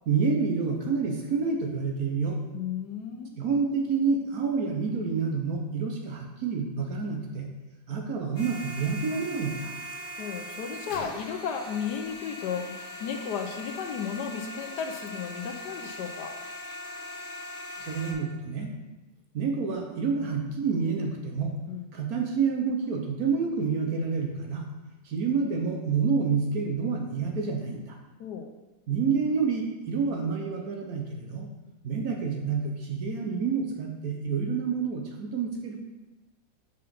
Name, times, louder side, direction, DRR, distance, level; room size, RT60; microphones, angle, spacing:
voice 1, 0.1-2.4 3.4-7.5 7.9-9.7 17.8-18.7 19.3-21.5 21.9-24.6 25.0-28.0 28.9-31.5 31.8-35.8, right 5 dB, 60° right, 2 dB, 1.2 m, -28 dB
voice 2, 2.5-3.3 10.2-12.6 13.0-16.3 21.7-21.9 28.2-28.5, left 7 dB, 70° left, 5 dB, 1.2 m, -34 dB
sound 1, 8.4-18.1, left 1 dB, 50° left, 1.7 m, -40 dB
5.6 x 5.4 x 5.2 m, 1.1 s
omnidirectional pair, 2.0 m